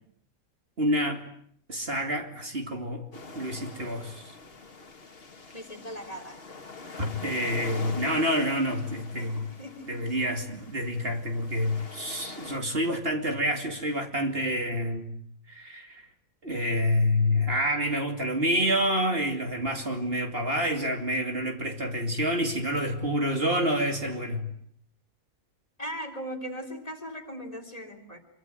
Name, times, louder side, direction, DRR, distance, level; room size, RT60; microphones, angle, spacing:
voice 1, 0.8-1.2 1.7-3.0 3.4-4.3 7.0-9.5 9.9-15.1 15.5-16.1 16.4-24.5, equal, 45° right, 4 dB, 2.9 m, -28 dB
sound 1, 3.1-12.6, left 3 dB, 45° left, 2.0 m, -43 dB
voice 2, 5.5-6.4 9.2-10.2 25.8-28.2, equal, 25° left, 7 dB, 3.4 m, -39 dB
25.0 x 24.5 x 9.2 m, 0.65 s
omnidirectional pair, 1.5 m